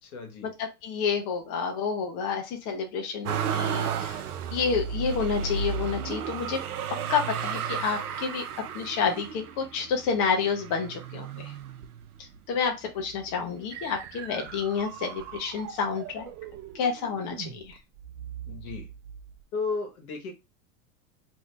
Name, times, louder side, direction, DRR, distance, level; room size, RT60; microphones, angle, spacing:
voice 1, 0.0-0.5 18.5-18.9 19.5-20.3, left 4 dB, 75° left, 3 dB, 1.2 m, -34 dB
voice 2, 0.8-4.2 4.5-6.6 7.1-8.4 8.7-11.5 12.5-16.3 16.7-17.8, left 5 dB, 45° left, 3 dB, 0.7 m, -29 dB
Motor vehicle (road), 3.2-12.4 13.0-13.8 14.1-15.2 16.2-16.3, right 7 dB, 85° right, 0.6 m, -33 dB
sound 1, 13.7-19.4, right 9 dB, 35° right, 0.6 m, -42 dB
2.7 x 2.6 x 3.2 m, 0.26 s
hypercardioid pair, 95°, 44 cm